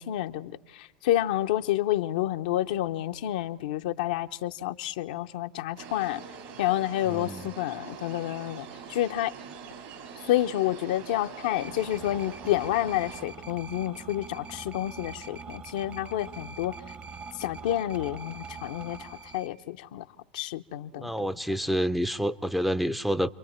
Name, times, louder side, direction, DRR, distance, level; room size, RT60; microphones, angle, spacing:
voice 1, 0.0-6.2 6.6-9.3 10.3-16.8 17.4-20.0 20.3-21.3, left 13 dB, 70° left, 0.8 m, -29 dB
sound 1, 5.8-13.2, right 6 dB, 65° right, 4.1 m, -44 dB
voice 2, 7.1-7.5 20.9-23.3, equal, ahead, 0.6 m, -28 dB
sound 2, 11.6-19.5, right 4 dB, 35° right, 1.2 m, -43 dB
30.0 x 23.5 x 4.4 m
hypercardioid pair, 95°, 4 cm